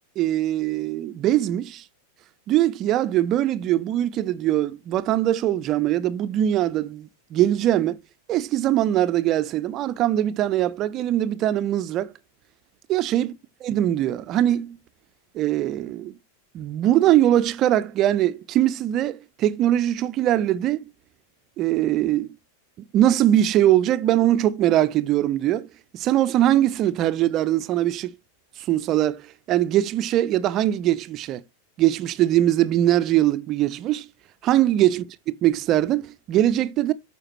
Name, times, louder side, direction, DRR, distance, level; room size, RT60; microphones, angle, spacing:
voice 1, 0.2-1.8 2.5-8.0 8.3-12.1 12.9-13.3 13.6-14.8 15.3-16.1 16.5-20.8 21.6-22.3 22.9-25.7 25.9-28.1 28.6-31.4 31.8-34.1 34.4-35.0 35.4-36.9, right 12 dB, 35° right, 0.6 m, -21 dB
13.5 x 5.0 x 2.9 m
figure-of-eight pair, 90°, 0 cm